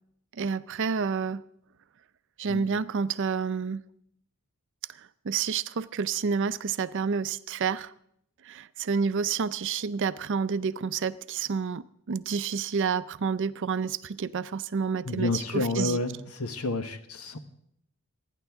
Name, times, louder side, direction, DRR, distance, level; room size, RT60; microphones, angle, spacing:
voice 1, 0.4-1.4 2.4-3.8 5.2-7.9 8.4-11.8 12.1-16.0, right 6 dB, 55° right, 15 dB, 0.5 m, -29 dB
voice 2, 15.0-17.4, left 2 dB, 80° left, 8 dB, 1.2 m, -30 dB
28.0 x 9.9 x 3.6 m, 0.73 s
head